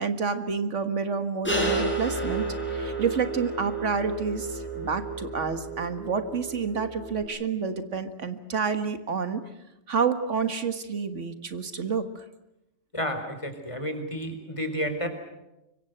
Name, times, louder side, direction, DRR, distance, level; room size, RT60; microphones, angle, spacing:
voice 1, 0.0-2.5 2.7-9.4 9.9-12.2, right 5 dB, 85° right, 9 dB, 2.0 m, -29 dB
sound 1, 1.4-7.2, right 2 dB, 10° left, 5.3 m, -31 dB
voice 2, 12.9-15.1, equal, 25° left, 6 dB, 4.3 m, -31 dB
25.5 x 23.5 x 7.9 m, 0.91 s
omnidirectional pair, 1.2 m